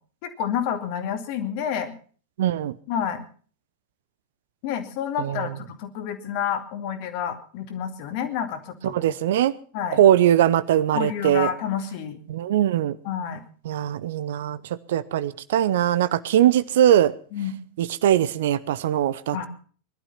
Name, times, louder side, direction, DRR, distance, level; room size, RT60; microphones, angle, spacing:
voice 1, 0.2-1.9 2.9-3.3 4.6-8.9 9.7-10.0 10.9-12.2 13.0-13.4 17.3-17.5 19.3-19.5, left 8 dB, 45° left, 7 dB, 2.5 m, -29 dB
voice 2, 2.4-2.7 5.2-5.5 8.8-9.5 9.9-11.5 12.3-13.0 13.7-14.6 14.9-17.1 17.8-19.5, right 11 dB, 55° right, 16 dB, 0.8 m, -21 dB
20.0 x 12.0 x 5.8 m, 0.43 s
figure-of-eight pair, 90°, 0 cm